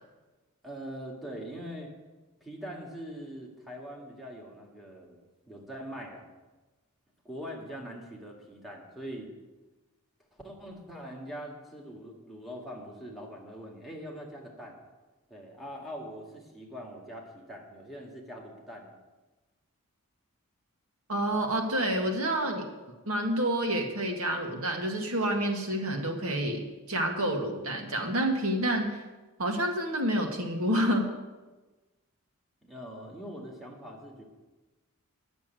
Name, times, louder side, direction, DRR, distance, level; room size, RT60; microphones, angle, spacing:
voice 1, 0.6-1.9 2.4-5.2 5.5-6.3 7.2-9.3 10.4-14.8 15.3-19.0 32.6-34.2, equal, ahead, -2 dB, 1.9 m, -42 dB
voice 2, 21.1-22.7 23.1-29.0 29.4-31.0, right 1 dB, 70° right, 2 dB, 1.9 m, -28 dB
10.5 x 7.1 x 9.0 m, 1.2 s
head